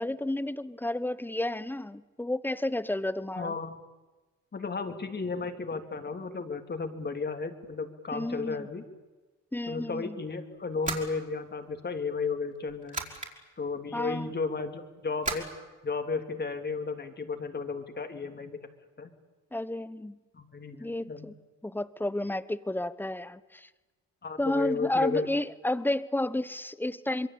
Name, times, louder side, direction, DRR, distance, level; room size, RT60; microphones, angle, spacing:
voice 1, 0.0-3.5 8.1-8.7 9.5-10.2 13.9-14.3 19.5-20.2 20.7-21.3 21.6-23.7 24.4-27.3, left 1 dB, 5° left, 15 dB, 1.0 m, -31 dB
voice 2, 3.4-3.8 4.5-8.8 9.7-13.0 13.6-15.5 15.8-18.6 19.0-19.1 20.3-21.3 24.2-25.3, left 4 dB, 35° left, 6 dB, 3.1 m, -34 dB
sound 1, 10.6-11.9 12.6-13.3 15.2-15.5, right 3 dB, 25° right, 4.8 m, -35 dB
26.0 x 22.5 x 8.7 m, 1.2 s
cardioid pair, 90°, 30 cm